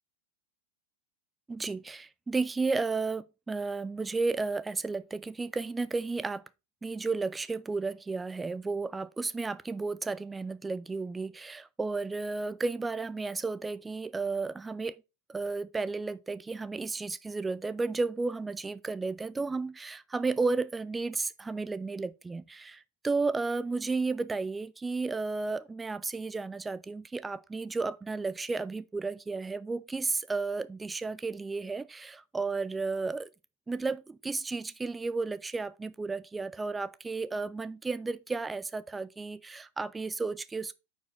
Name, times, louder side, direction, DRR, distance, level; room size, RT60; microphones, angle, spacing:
voice 1, 1.5-6.4 6.8-15.0 15.3-33.3 33.7-40.7, right 3 dB, 10° right, 0.3 m, -33 dB
8.9 x 4.8 x 2.5 m
figure-of-eight pair, 90°, 0 cm